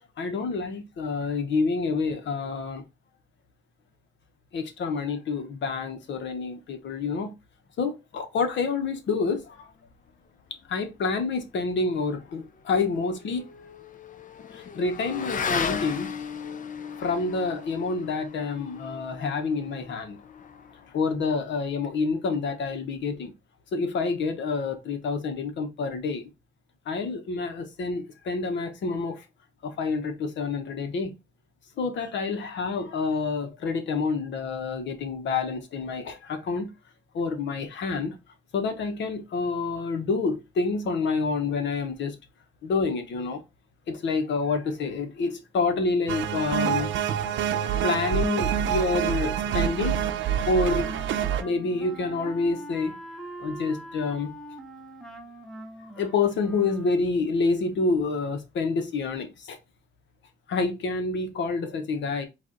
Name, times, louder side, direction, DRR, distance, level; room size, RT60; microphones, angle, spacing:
voice 1, 0.2-2.8 4.5-7.3 7.8-9.7 10.7-13.4 14.5-16.1 16.4-16.6 17.0-20.2 20.9-23.3 23.7-26.3 26.9-29.2 29.6-31.1 31.8-36.7 37.1-38.1 38.5-42.2 42.6-43.4 43.9-46.9 47.8-50.0 50.4-50.9 51.4-53.0 53.4-54.3 55.8-59.6 60.5-62.3, left 4 dB, 65° left, 1.2 m, -28 dB
Motorcycle / Accelerating revving vroom, 12.5-21.2, left 6 dB, 40° left, 0.6 m, -36 dB
sound 1, 46.1-51.4, right 9 dB, 75° right, 0.6 m, -26 dB
Wind instrument woodwind instrument, 49.8-57.2, right 1 dB, ahead, 1.0 m, -43 dB
4.9 x 2.7 x 3.9 m
cardioid pair, 90°, 20 cm